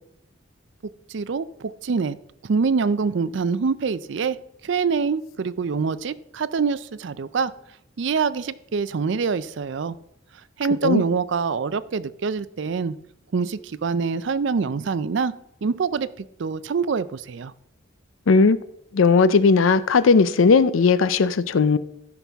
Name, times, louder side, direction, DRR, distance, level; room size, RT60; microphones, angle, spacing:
voice 1, 1.1-2.2 2.4-4.4 4.6-7.5 8.0-10.0 10.6-12.9 13.3-15.3 15.6-17.5, right 5 dB, 60° right, 0.4 m, -25 dB
voice 2, 18.3-18.6 18.9-21.8, left 4 dB, 80° left, 0.5 m, -17 dB
14.0 x 5.9 x 3.5 m
head